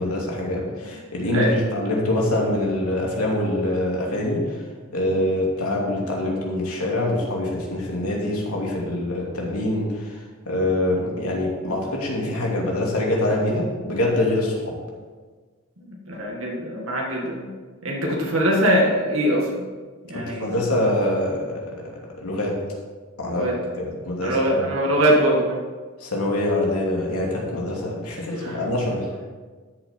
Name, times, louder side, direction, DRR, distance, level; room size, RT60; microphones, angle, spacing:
voice 1, 0.0-4.6 4.9-10.2 10.4-14.7 20.1-21.7 22.2-22.6 23.2-24.7 26.0-29.1, left 1 dB, 85° left, -2 dB, 2.8 m, -24 dB
voice 2, 15.9-17.5 17.8-19.6 20.1-20.6 23.2-23.5 24.2-25.6 28.4-28.6, equal, 65° right, -2 dB, 1.8 m, -22 dB
13.0 x 7.4 x 4.5 m, 1.4 s
head